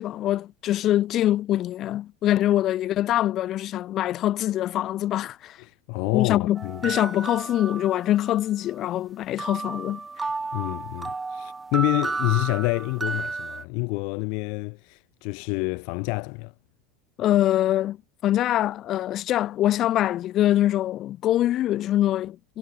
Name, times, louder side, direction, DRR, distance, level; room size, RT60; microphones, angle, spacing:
voice 1, 0.0-5.6 6.1-10.0 17.2-18.0 18.2-22.6, left 13 dB, 30° left, 1.7 m, -24 dB
voice 2, 5.6-6.9 10.5-16.5, left 36 dB, 50° left, 4.4 m, -28 dB
sound 1, 6.6-8.4 9.4-13.6, right 3 dB, 10° right, 0.7 m, -32 dB
supercardioid pair, 165°, 0 cm